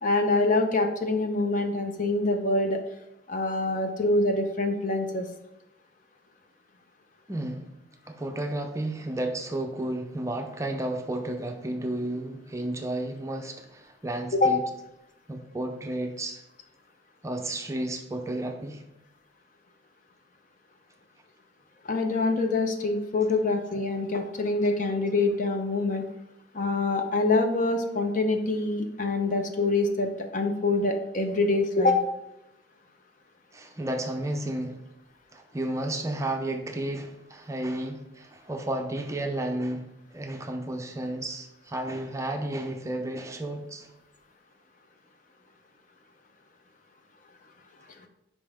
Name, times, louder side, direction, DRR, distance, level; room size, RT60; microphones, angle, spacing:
voice 1, 0.0-2.8 3.3-5.3 14.3-14.5 21.8-26.1 26.5-32.0, left 2 dB, 45° left, 5 dB, 0.7 m, -25 dB
voice 2, 7.3-7.7 8.1-14.6 15.3-16.4 17.2-18.8 33.5-34.8 35.3-39.9 40.1-43.9, right 1 dB, 15° right, 4 dB, 0.5 m, -32 dB
5.4 x 5.2 x 3.5 m, 0.86 s
head